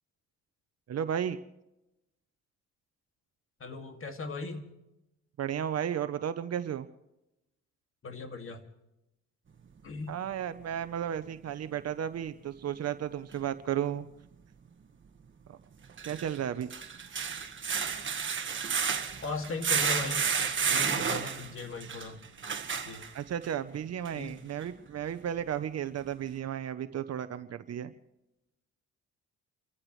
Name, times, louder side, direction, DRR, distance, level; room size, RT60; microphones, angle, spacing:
voice 1, 0.9-1.4 5.4-6.9 10.1-14.1 15.5-15.6 16.0-16.7 23.1-27.9, right 9 dB, 55° right, 11 dB, 0.9 m, -34 dB
voice 2, 3.6-4.7 8.0-8.6 9.8-10.2 19.2-22.2 22.8-23.1 24.1-24.4, left 3 dB, 45° left, 5 dB, 2.3 m, -38 dB
sound 1, 13.3-13.4 15.8-23.5 24.0-24.1 24.6-24.7, right 6 dB, 40° right, 1.6 m, -31 dB
30.0 x 14.5 x 3.2 m, 0.92 s
cardioid pair, 90°, 30 cm